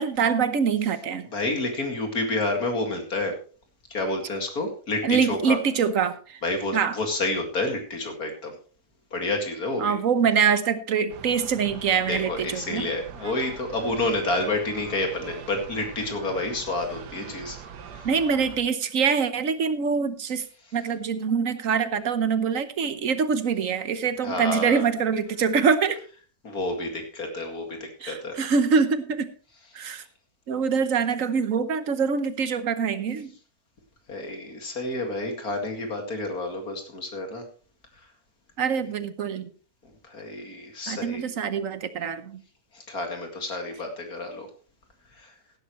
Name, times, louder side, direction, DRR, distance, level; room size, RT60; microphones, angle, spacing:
voice 1, 0.0-1.3 5.0-6.4 6.7-7.0 9.8-12.9 18.0-20.4 20.7-26.0 28.0-29.3 29.7-30.0 30.5-33.3 38.6-39.5 40.9-42.4, right 6 dB, 55° right, 12 dB, 1.3 m, -24 dB
voice 2, 1.3-3.3 3.9-5.6 6.4-8.5 9.1-10.0 12.1-17.6 17.9-18.1 24.2-24.9 26.4-27.8 28.1-28.4 34.1-37.4 40.0-41.2 42.7-44.5 45.2-45.3, left 2 dB, 60° left, 3 dB, 2.7 m, -29 dB
sound 1, 11.1-18.6, right 7 dB, 85° right, 1.7 m, -42 dB
16.0 x 11.5 x 3.1 m, 0.39 s
omnidirectional pair, 1.7 m